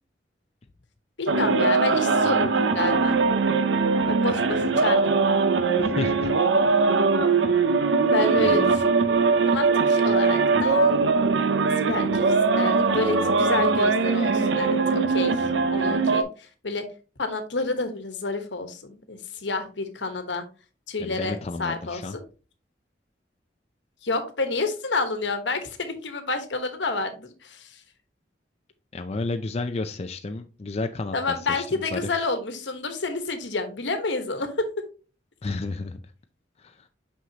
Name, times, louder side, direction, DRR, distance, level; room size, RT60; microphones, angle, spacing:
voice 1, 1.2-3.2 4.1-5.1 8.0-9.2 9.5-11.0 11.8-12.2 12.5-16.9 17.2-20.4 20.9-22.2 24.0-27.8 31.1-34.7, left 3 dB, 80° left, 1.2 m, -29 dB
sound 1, 1.3-16.2, right 4 dB, 85° right, 0.6 m, -21 dB
voice 2, 5.8-6.3 8.3-8.7 21.0-22.1 28.9-32.0 35.4-36.0 36.6-36.9, left 3 dB, 35° left, 0.4 m, -32 dB
6.1 x 5.6 x 2.9 m
head